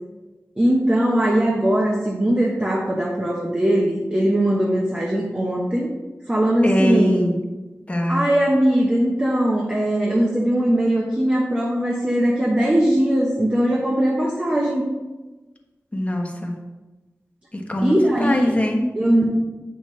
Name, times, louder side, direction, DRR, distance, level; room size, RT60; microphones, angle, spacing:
voice 1, 0.6-5.9 6.3-7.3 8.1-14.9 17.8-18.5 18.9-19.2, right 1 dB, 20° right, -3 dB, 1.0 m, -20 dB
voice 2, 6.6-7.4 7.9-8.3 15.9-16.6 17.5-17.9 18.2-18.9, equal, 25° left, 1 dB, 1.1 m, -22 dB
8.0 x 5.7 x 3.2 m, 1.2 s
wide cardioid pair, 90°, 5 cm